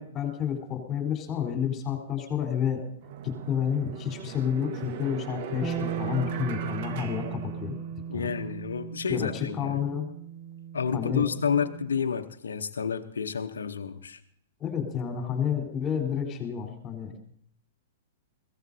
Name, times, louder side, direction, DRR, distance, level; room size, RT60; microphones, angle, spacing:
voice 1, 0.0-2.8 3.2-7.7 8.1-8.3 9.1-10.0 10.9-11.3 14.6-17.1, left 8 dB, 30° left, 2 dB, 4.1 m, -30 dB
sound 1, 2.3-2.4 3.0-8.2, right 8 dB, 50° right, 1.4 m, -40 dB
Bass guitar, 5.6-11.9, right 8 dB, 5° right, 1.3 m, -37 dB
voice 2, 8.1-9.8 10.7-14.2, left 6 dB, 80° left, 6 dB, 0.9 m, -30 dB
22.0 x 16.5 x 2.8 m, 0.65 s
hypercardioid pair, 115°, 0 cm